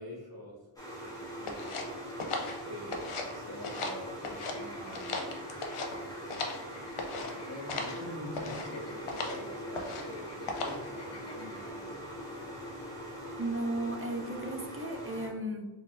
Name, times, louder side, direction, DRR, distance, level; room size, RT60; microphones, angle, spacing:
voice 1, 0.0-2.0 2.6-5.5 7.2-12.5, left 1 dB, 50° right, -2 dB, 1.2 m, -46 dB
sound 1, 0.8-15.3, equal, 5° left, 1.4 m, -42 dB
sound 2, 1.5-3.3 3.6-4.6 4.9-6.6 7.0-7.3 7.7-8.0 8.3-8.7 9.1-9.4 9.7-10.1 10.5-10.9, left 3 dB, 80° left, 0.7 m, -37 dB
sound 3, 4.3-11.7, left 2 dB, 30° left, 0.6 m, -53 dB
voice 2, 13.4-15.7, right 1 dB, 25° right, 4 dB, 0.5 m, -35 dB
4.1 x 3.8 x 2.5 m, 1.2 s
wide cardioid pair, 55°, 49 cm